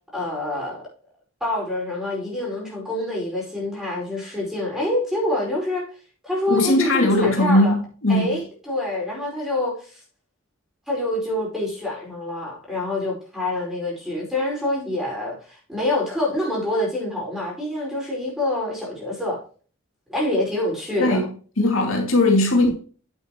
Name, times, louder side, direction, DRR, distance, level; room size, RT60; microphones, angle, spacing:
voice 1, 0.1-0.8 1.4-5.8 6.2-7.8 8.1-10.0 10.9-19.4 20.1-21.2, left 1 dB, ahead, 4.9 m, -26 dB
voice 2, 6.5-8.4 21.0-21.3 21.6-22.7, left 1 dB, 70° left, 2.4 m, -19 dB
9.2 x 8.2 x 3.0 m
head